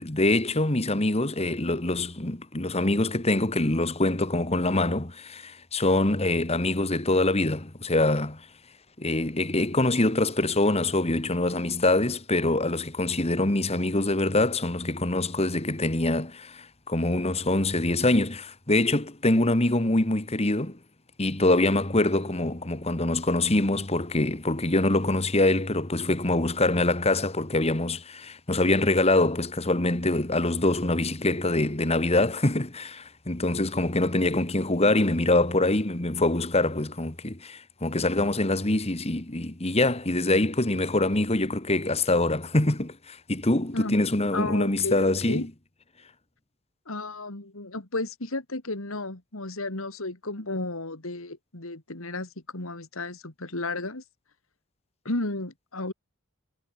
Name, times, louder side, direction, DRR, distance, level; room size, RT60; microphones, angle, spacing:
voice 1, 0.0-8.5 9.0-20.8 21.2-45.5, left 2 dB, 30° left, 2.0 m, -24 dB
voice 2, 43.7-44.1 44.3-45.5 46.9-54.0 55.0-55.9, left 2 dB, 70° left, 2.7 m, -33 dB
head